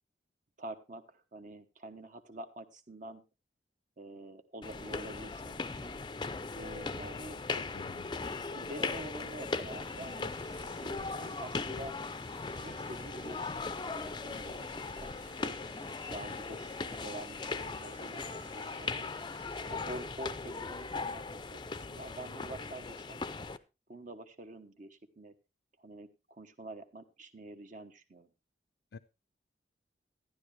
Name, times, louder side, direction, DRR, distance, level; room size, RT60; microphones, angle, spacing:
voice 1, 0.6-3.2 4.0-5.9 6.5-7.4 8.4-12.0 12.6-15.5 16.1-19.1 19.7-23.2 23.9-25.3 25.8-28.3, right 1 dB, 45° right, 8 dB, 1.1 m, -47 dB
sound 1, 4.6-23.6, left 4 dB, 25° left, 0.5 m, -39 dB
voice 2, 7.5-8.1 28.9-29.0, left 5 dB, 70° left, 8 dB, 0.5 m, -48 dB
sound 2, 9.3-19.7, right 3 dB, 85° right, 1.7 m, -57 dB
12.5 x 11.0 x 3.3 m, 0.27 s
head